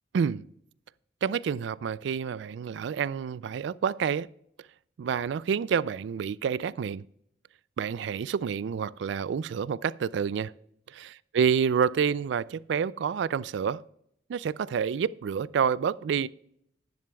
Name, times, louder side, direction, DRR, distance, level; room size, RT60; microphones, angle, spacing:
voice 1, 0.1-0.5 1.2-4.3 5.0-7.0 7.8-10.5 10.9-13.8 14.3-16.3, right 7 dB, 70° right, 0.3 m, -28 dB
10.5 x 10.5 x 2.3 m
head